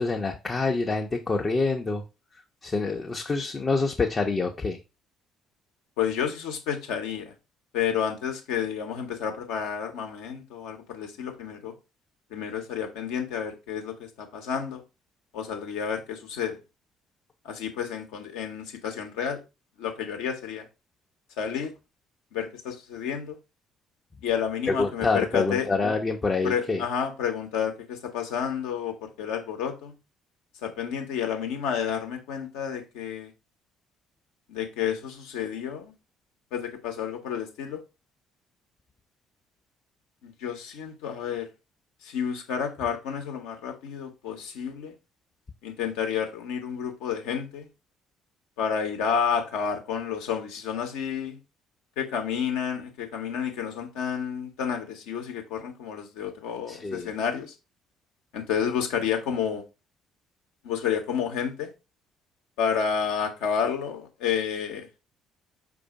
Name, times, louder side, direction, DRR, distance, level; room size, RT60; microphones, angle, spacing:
voice 1, 0.0-2.0 2.6-4.8 24.7-26.8 56.7-57.1, left 3 dB, 30° left, 0.6 m, -26 dB
voice 2, 6.0-7.3 7.7-11.7 12.3-14.8 15.3-16.6 17.4-19.4 19.8-20.6 21.4-21.7 22.3-23.4 24.2-25.7 26.4-29.9 30.6-33.3 34.5-35.9 36.5-37.8 40.2-41.5 42.0-44.9 45.6-47.7 48.6-51.4 52.0-57.5 58.3-59.6 60.6-61.7 62.6-65.0, left 7 dB, 65° left, 0.8 m, -30 dB
4.9 x 2.6 x 4.0 m
figure-of-eight pair, 50°, 0 cm